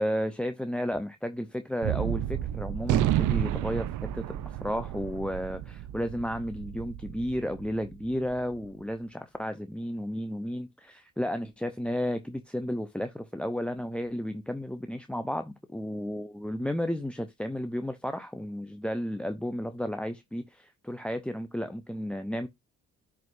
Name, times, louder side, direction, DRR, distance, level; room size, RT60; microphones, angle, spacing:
voice 1, 0.0-22.5, equal, 5° left, 0.7 m, -33 dB
Gunshot gunfire, 1.8-8.4, right 12 dB, 80° right, 0.7 m, -31 dB
10.5 x 4.8 x 2.7 m
cardioid pair, 90°, 30 cm